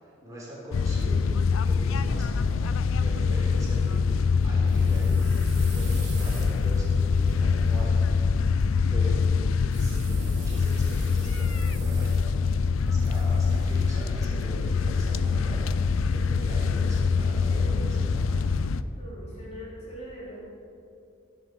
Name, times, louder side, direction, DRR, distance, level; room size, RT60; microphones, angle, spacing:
voice 1, 0.0-2.7 2.9-4.0 4.4-5.3 5.6-8.0 8.9-9.2 9.8-12.4 12.8-15.8 16.1-18.4, equal, 15° right, -7 dB, 3.7 m, -41 dB
sound 1, 0.7-18.8, left 5 dB, 85° left, 0.4 m, -24 dB
sound 2, 4.7-7.7 9.7-12.5 12.8-13.9, right 8 dB, 60° right, 2.2 m, -47 dB
voice 2, 19.0-20.4, equal, 30° left, -6 dB, 3.5 m, -42 dB
15.5 x 9.2 x 5.3 m, 2.6 s
head